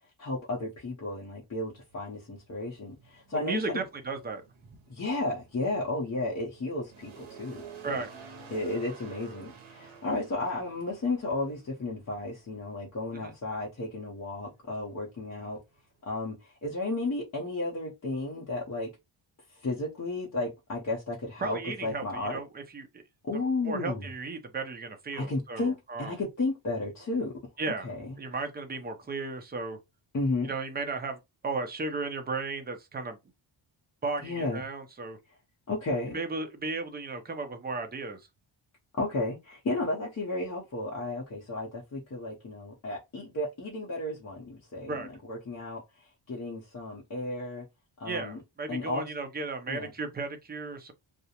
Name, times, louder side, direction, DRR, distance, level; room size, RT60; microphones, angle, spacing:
voice 1, 0.2-3.8 4.9-8.0 8.5-15.6 16.0-18.9 19.5-22.4 23.2-24.1 25.1-27.4 27.8-28.2 30.1-30.5 34.2-34.6 35.7-36.2 39.0-47.7 48.0-48.4 48.7-49.0 49.7-49.9, left 2 dB, 35° left, 0.6 m, -33 dB
sound 1, 1.6-16.1, right 6 dB, 70° right, 0.8 m, -52 dB
voice 2, 3.3-4.4 7.8-8.1 13.1-13.3 21.4-22.9 23.6-26.2 27.6-27.9 28.2-29.8 30.5-33.2 34.0-35.2 36.1-38.2 44.9-45.1 48.0-50.9, right 3 dB, 20° right, 0.5 m, -35 dB
2.4 x 2.0 x 2.8 m
wide cardioid pair, 135°, 49 cm